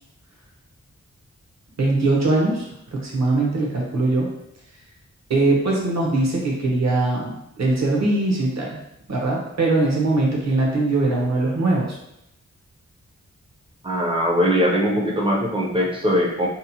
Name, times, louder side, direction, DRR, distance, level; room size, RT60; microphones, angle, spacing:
voice 1, 1.8-4.3 5.3-8.8 9.1-12.0, right 2 dB, 65° right, -2 dB, 0.7 m, -21 dB
voice 2, 13.8-16.5, equal, 20° right, -2 dB, 0.4 m, -21 dB
2.8 x 2.0 x 2.7 m, 0.84 s
wide cardioid pair, 115°, 30 cm